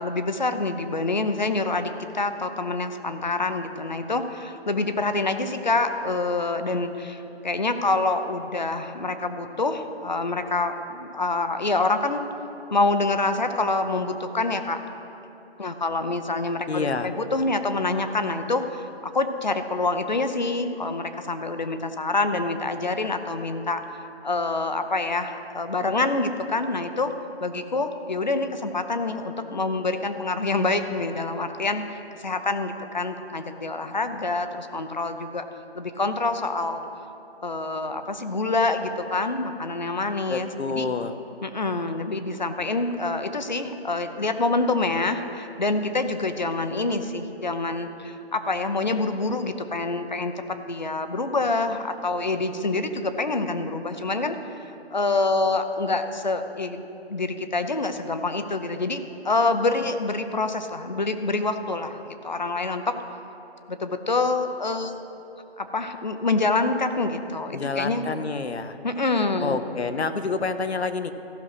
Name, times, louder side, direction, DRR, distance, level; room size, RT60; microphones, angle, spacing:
voice 1, 0.0-12.3 12.7-14.8 15.6-23.8 24.2-27.1 27.4-35.4 35.7-36.8 37.4-40.9 41.4-50.3 50.7-62.9 63.7-64.9 65.6-68.1 68.8-69.6, left 3 dB, 45° left, 8 dB, 0.7 m, -26 dB
voice 2, 16.7-17.1 40.3-41.1 67.5-68.8 69.4-71.1, left 4 dB, 80° left, 10 dB, 0.9 m, -28 dB
14.5 x 6.2 x 6.0 m, 2.9 s
hypercardioid pair, 180°, 32 cm